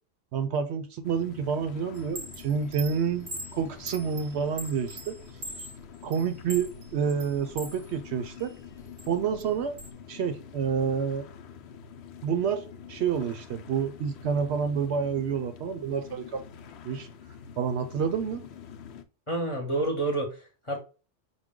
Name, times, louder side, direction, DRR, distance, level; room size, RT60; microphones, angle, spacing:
voice 1, 0.3-5.2 6.0-8.5 9.1-9.8 10.1-11.3 12.2-16.5 16.8-17.1 17.6-18.4, right 6 dB, 70° right, 0.8 m, -29 dB
sound 1, 1.0-19.0, left 7 dB, 70° left, 0.8 m, -47 dB
Chime, 2.0-7.8 8.2-9.9, right 1 dB, 35° right, 0.4 m, -42 dB
voice 2, 19.3-20.8, right 2 dB, 30° left, 0.9 m, -29 dB
4.7 x 2.2 x 3.6 m
omnidirectional pair, 1.2 m